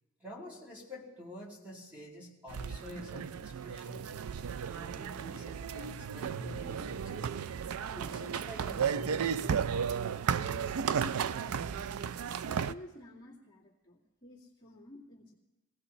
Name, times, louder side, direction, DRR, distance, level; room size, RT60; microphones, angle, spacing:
voice 1, 0.2-4.1 4.7-7.4 7.9-9.8, left 1 dB, 5° right, -3 dB, 2.3 m, -47 dB
sound 1, 2.5-12.7, right 7 dB, 85° right, 0.4 m, -34 dB
voice 2, 10.9-12.2 12.5-15.3, left 1 dB, 20° left, -6 dB, 2.1 m, -51 dB
22.0 x 17.0 x 3.1 m, 1.1 s
head